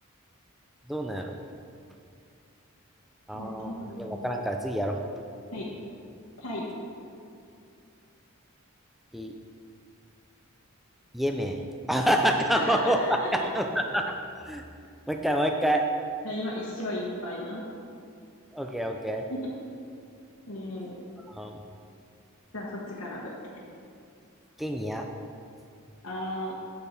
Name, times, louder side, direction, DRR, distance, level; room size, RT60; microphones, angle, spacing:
voice 1, 0.9-1.3 3.3-5.0 9.1-9.4 11.1-11.6 11.9-13.7 13.9-14.1 14.5-14.6 15.1-15.8 18.5-19.2 21.3-21.6 24.6-25.1, equal, ahead, 3 dB, 0.3 m, -27 dB
voice 2, 3.3-4.2 5.5-5.7 6.4-6.6 12.5-13.3 16.2-17.6 19.3-19.4 20.5-20.9 22.5-23.3 26.0-26.5, left 1 dB, 75° left, -6 dB, 1.2 m, -35 dB
8.3 x 6.8 x 4.3 m, 2.4 s
head